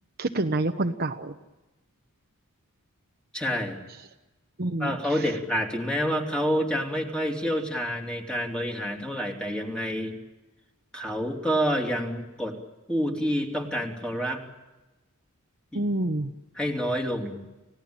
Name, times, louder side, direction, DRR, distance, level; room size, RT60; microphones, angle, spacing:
voice 1, 0.2-1.4 4.6-5.3 15.7-16.3, right 2 dB, 45° right, 6 dB, 1.1 m, -28 dB
voice 2, 3.3-3.8 4.8-10.1 10.9-12.6 12.9-14.4 15.7-15.8 16.5-17.4, equal, 5° left, 1 dB, 3.0 m, -28 dB
30.0 x 17.0 x 8.8 m, 1.1 s
head